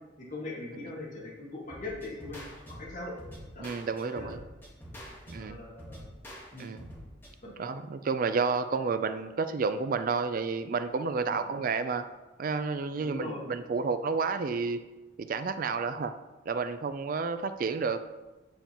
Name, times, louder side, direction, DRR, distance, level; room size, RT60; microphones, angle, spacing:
voice 1, 0.3-2.4 2.8-3.2 3.5-3.7 4.1-4.3 5.3-6.1 6.5-6.7 11.3-11.4 13.0-13.4, left 2 dB, 40° left, -5 dB, 1.7 m, -40 dB
sound 1, 1.7-7.3, equal, 10° left, 1.6 m, -46 dB
voice 2, 3.6-4.4 5.3-5.6 6.6-6.9 7.6-12.0 12.4-14.8 15.2-16.1 16.5-18.1, right 4 dB, 45° right, 10 dB, 0.4 m, -30 dB
9.1 x 7.0 x 3.0 m, 1.1 s
head